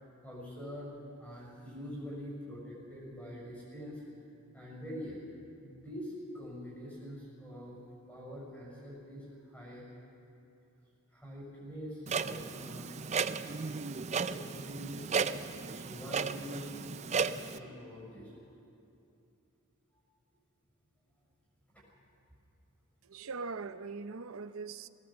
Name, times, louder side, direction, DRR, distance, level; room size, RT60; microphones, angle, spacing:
voice 1, 0.2-0.9 1.2-4.0 4.5-5.2 5.6-7.8 8.1-9.3 9.5-9.9 11.1-13.0 14.2-15.3 15.7-16.7 17.1-18.3, equal, 5° left, -5 dB, 6.1 m, -44 dB
Clock, 12.1-17.6, right 5 dB, 30° right, 0.4 m, -35 dB
voice 2, 23.1-24.9, right 4 dB, 70° right, 12 dB, 0.6 m, -41 dB
19.5 x 18.5 x 7.2 m, 2.6 s
head